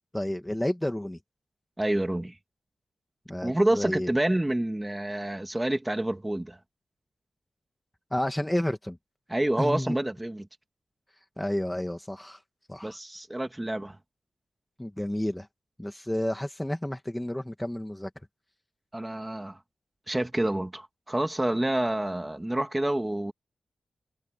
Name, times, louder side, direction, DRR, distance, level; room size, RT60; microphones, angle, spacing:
voice 1, 0.1-1.2 3.3-4.1 8.1-9.0 9.6-10.0 11.4-12.4 12.7-13.0 14.8-15.5 15.8-18.1, left 1 dB, 5° left, 1.5 m, -30 dB
voice 2, 1.8-2.3 3.4-6.6 9.3-10.5 12.8-14.0 18.9-19.6 20.1-23.3, right 1 dB, 10° right, 1.7 m, -28 dB
wide cardioid pair, 160°, 0 cm